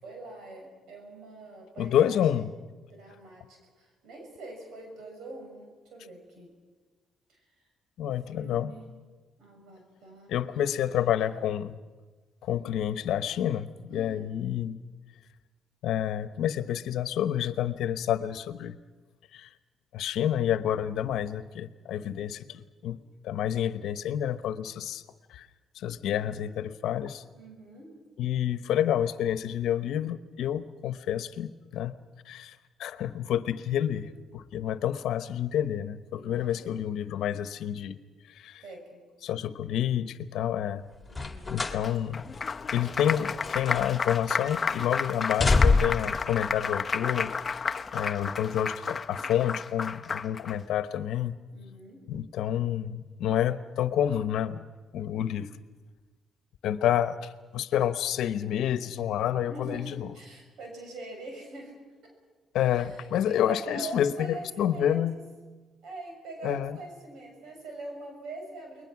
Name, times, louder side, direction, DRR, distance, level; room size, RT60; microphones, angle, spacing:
voice 1, 0.0-2.4 2.9-6.5 8.3-8.8 9.4-11.2 13.9-14.2 27.4-27.9 36.1-36.9 38.6-39.0 41.1-41.5 51.5-52.0 59.5-61.7 62.7-62.9 63.2-65.0 65.8-68.8, right 2 dB, 80° right, 1 dB, 6.5 m, -44 dB
voice 2, 1.8-2.5 8.0-8.7 10.3-11.8 12.4-14.8 15.8-18.8 19.3-19.5 19.9-23.0 23.2-25.0 25.3-25.5 25.7-27.2 28.2-32.0 32.3-38.0 38.3-38.6 39.2-40.8 41.5-42.2 42.7-47.3 47.9-51.4 52.1-54.6 54.9-55.5 56.6-60.1 62.5-65.2 66.4-66.8, left 10 dB, 80° left, 13 dB, 1.0 m, -29 dB
sound 1, 41.1-41.9 42.2-42.4 43.1-44.2 44.4-44.8 45.2-46.1 47.0-47.1, left 3 dB, 15° left, 2.2 m, -25 dB
Applause, 41.8-50.6, left 5 dB, 35° left, 0.7 m, -32 dB
29.5 x 21.0 x 6.0 m, 1.3 s
cardioid pair, 90°, 0 cm